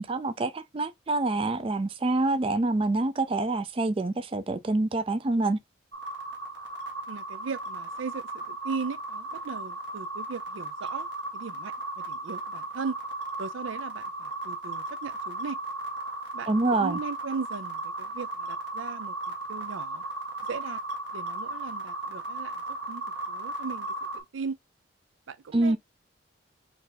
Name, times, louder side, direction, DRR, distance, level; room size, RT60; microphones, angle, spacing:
voice 1, 0.0-5.6 16.5-17.0 25.5-25.8, right 2 dB, 30° right, 0.4 m, -26 dB
sound 1, 5.9-24.2, right 2 dB, 70° right, 1.6 m, -36 dB
voice 2, 7.1-11.1 11.3-13.0 13.4-15.6 16.3-20.0 20.5-20.8 21.1-24.6 25.3-25.8, right 5 dB, 85° right, 0.5 m, -38 dB
4.3 x 2.6 x 4.0 m
head